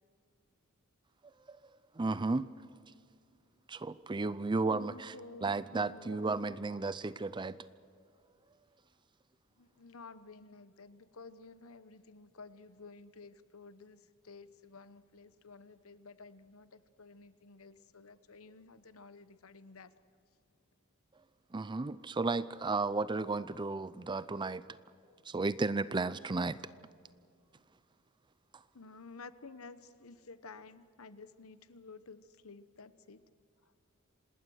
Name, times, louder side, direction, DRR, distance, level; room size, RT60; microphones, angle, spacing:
voice 1, 2.0-2.5 3.7-5.1 5.4-7.6 21.5-24.6 25.2-26.6, right 3 dB, 20° right, 16 dB, 0.5 m, -33 dB
voice 2, 4.2-6.8 9.6-19.9 28.7-33.2, left 4 dB, 75° left, 13 dB, 1.1 m, -53 dB
27.0 x 19.5 x 6.4 m, 2.4 s
head